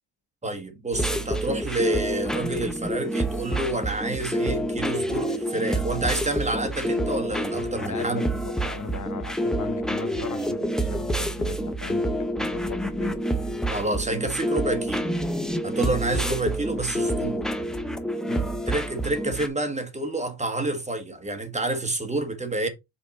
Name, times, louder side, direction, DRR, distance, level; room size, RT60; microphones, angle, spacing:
voice 1, 0.4-8.2 13.7-15.1 15.6-17.5 18.7-22.7, right 2 dB, 15° right, 1.3 m, -28 dB
sound 1, 0.9-19.5, right 1 dB, ahead, 0.6 m, -28 dB
voice 2, 7.8-13.2 18.3-18.5, left 7 dB, 40° left, 0.8 m, -38 dB
5.4 x 4.2 x 4.1 m
cardioid pair, 130°, 49 cm